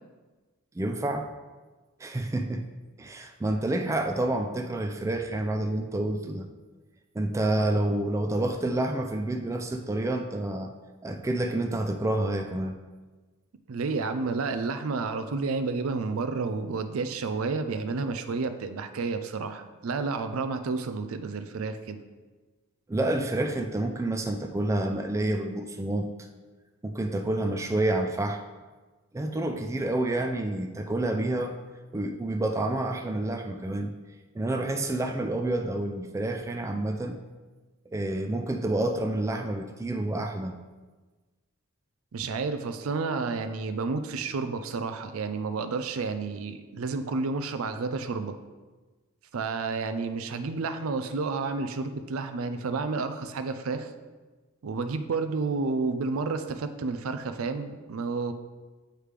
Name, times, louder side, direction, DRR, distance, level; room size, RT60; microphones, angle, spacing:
voice 1, 0.8-1.3 2.0-2.7 3.0-6.5 7.1-10.7 11.0-12.8 22.9-26.1 26.8-28.4 29.1-31.6 31.9-33.9 34.3-37.2 37.9-40.5, right 1 dB, 15° right, 5 dB, 0.3 m, -28 dB
voice 2, 13.7-22.0 42.1-48.4 49.3-53.9 54.6-58.3, right 4 dB, 75° right, 9 dB, 0.4 m, -30 dB
9.0 x 3.3 x 3.3 m, 1.3 s
head